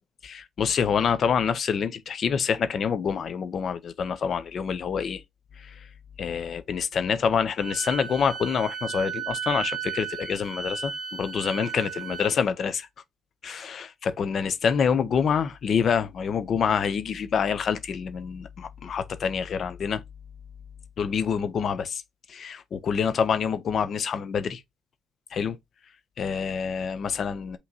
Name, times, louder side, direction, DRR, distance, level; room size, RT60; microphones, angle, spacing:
voice 1, 0.2-5.2 5.6-5.8 6.2-12.9 13.4-20.0 21.0-22.0 22.3-24.6 25.3-25.6 26.2-27.6, left 6 dB, 45° left, 0.5 m, -26 dB
Wind instrument woodwind instrument, 7.6-12.3, right 7 dB, 25° right, 0.6 m, -34 dB
5.7 x 3.0 x 2.7 m
cardioid pair, 140°, 0 cm